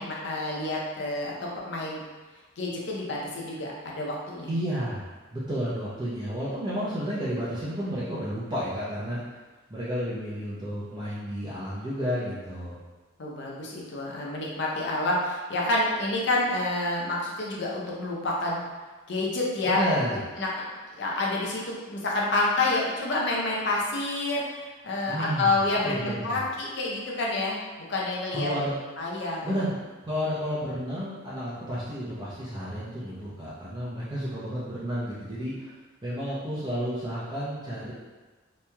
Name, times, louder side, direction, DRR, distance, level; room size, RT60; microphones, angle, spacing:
voice 1, 0.0-2.0 2.6-4.5 13.2-18.6 19.1-19.8 20.4-20.5 20.9-27.6 27.9-28.5 29.0-29.6, left 2 dB, 60° left, -3 dB, 0.6 m, -28 dB
voice 2, 4.5-9.2 9.7-12.8 19.6-20.2 25.1-25.6 25.8-26.4 28.3-28.7 29.4-29.7 30.0-35.7 36.0-37.9, equal, 20° right, -10 dB, 0.5 m, -31 dB
3.0 x 2.7 x 2.2 m, 1.2 s
head